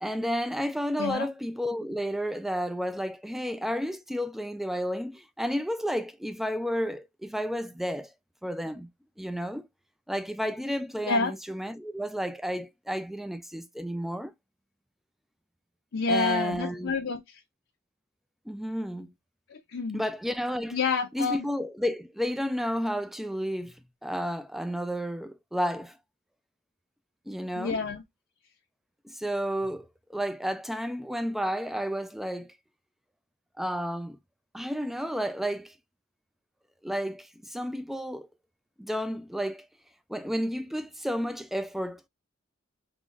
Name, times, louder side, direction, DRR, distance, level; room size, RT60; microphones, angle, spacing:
voice 1, 0.0-8.1 8.4-8.9 9.2-9.7 10.1-14.3 16.1-16.9 18.5-19.1 19.9-20.8 21.1-23.8 24.0-26.0 27.3-27.8 29.0-32.5 33.6-34.2 34.5-35.7 36.8-38.3 38.8-39.7 40.1-42.1, equal, ahead, 0.3 m, -31 dB
voice 2, 15.9-17.4 19.5-20.0 20.7-21.4 27.6-28.0, left 4 dB, 60° left, 0.6 m, -28 dB
3.9 x 2.9 x 2.4 m
head